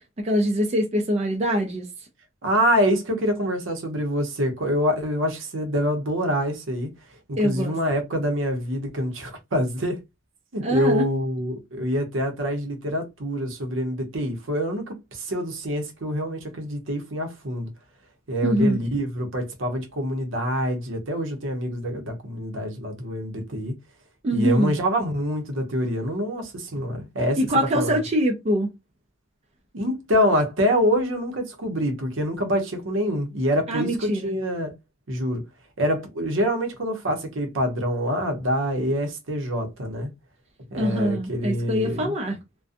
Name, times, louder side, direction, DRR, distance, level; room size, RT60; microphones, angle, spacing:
voice 1, 0.2-1.9 7.4-7.8 10.6-11.1 18.4-18.8 24.2-24.7 27.4-28.7 33.7-34.3 40.7-42.4, equal, 35° right, 0.5 m, -23 dB
voice 2, 2.4-6.9 7.3-10.0 10.5-17.7 18.3-23.7 24.3-27.4 27.7-28.0 29.7-34.7 35.1-35.4 35.8-40.1 40.7-42.1, equal, 70° right, 0.8 m, -26 dB
2.4 x 2.2 x 2.5 m
head